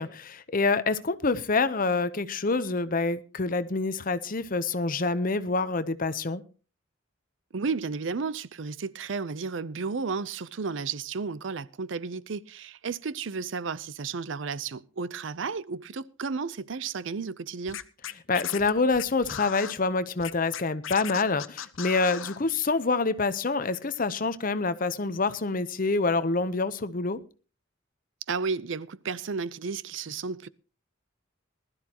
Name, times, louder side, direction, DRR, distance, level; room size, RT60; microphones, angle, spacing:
voice 1, 0.0-6.4 18.3-27.2, left 3 dB, 40° left, 0.8 m, -27 dB
voice 2, 7.5-17.8 28.3-30.5, right 5 dB, 65° right, 0.6 m, -33 dB
Scratching (performance technique), 17.7-19.7 20.2-22.4, left 9 dB, 75° left, 0.8 m, -37 dB
20.0 x 12.5 x 2.9 m
head